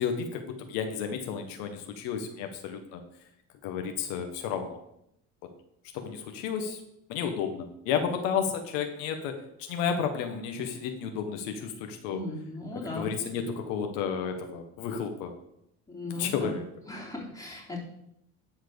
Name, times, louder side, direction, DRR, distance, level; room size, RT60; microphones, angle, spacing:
voice 1, 0.0-3.0 3.6-4.8 5.9-6.8 7.1-9.3 9.6-12.2 12.7-15.3 16.1-16.6, left 7 dB, 80° left, 5 dB, 1.5 m, -32 dB
voice 2, 12.0-13.1 15.9-16.6 16.9-17.8, left 2 dB, 10° left, -3 dB, 3.7 m, -37 dB
12.0 x 4.7 x 6.9 m, 0.78 s
supercardioid pair, 110°, 33 cm